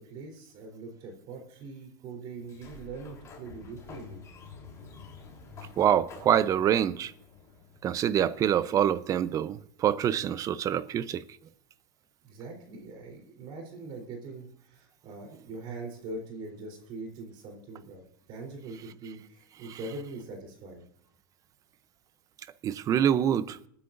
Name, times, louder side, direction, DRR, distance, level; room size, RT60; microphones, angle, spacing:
voice 1, 0.0-4.2 12.2-18.0 18.3-20.8, right 3 dB, 45° right, 3.7 m, -42 dB
Sliding door, 2.4-8.1, left 5 dB, 30° left, 3.7 m, -49 dB
voice 2, 5.8-7.1 7.8-11.2 19.7-19.8 22.6-23.6, right 9 dB, 30° right, 0.7 m, -25 dB
26.0 x 9.9 x 2.6 m
supercardioid pair, 120°, 11 cm